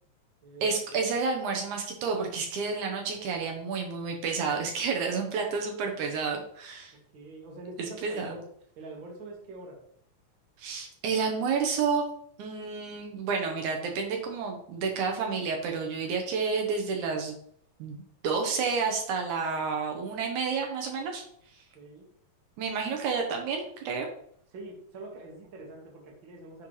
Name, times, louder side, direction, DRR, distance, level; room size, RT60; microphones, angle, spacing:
voice 1, 0.6-6.9 7.8-8.3 10.6-12.1 12.4-17.4 17.8-18.0 18.2-21.2 22.6-24.1, right 5 dB, 80° right, 2 dB, 2.3 m, -30 dB
voice 2, 7.1-8.4 8.8-9.8 21.7-22.1 24.5-26.7, right 2 dB, 45° right, 0 dB, 2.0 m, -44 dB
9.7 x 4.3 x 3.2 m, 0.64 s
omnidirectional pair, 3.5 m